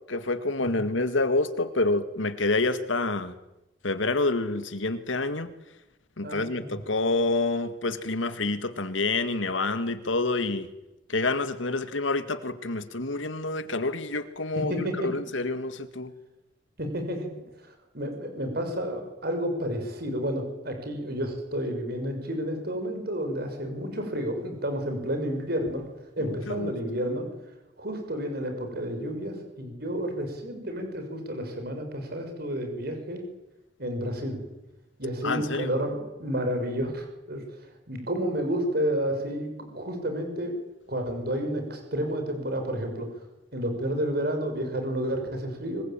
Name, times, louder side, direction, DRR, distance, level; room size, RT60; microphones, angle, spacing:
voice 1, 0.1-3.3 3.8-5.5 6.2-10.7 11.1-16.1 26.2-26.7 35.2-35.7, left 2 dB, 90° left, 1.9 m, -28 dB
voice 2, 6.2-6.8 14.5-15.1 16.8-17.3 17.6-25.9 26.2-27.3 27.8-33.2 33.8-34.4 35.0-40.5 40.9-43.1 43.5-45.8, equal, 55° right, 6.4 m, -31 dB
25.5 x 20.5 x 9.0 m
head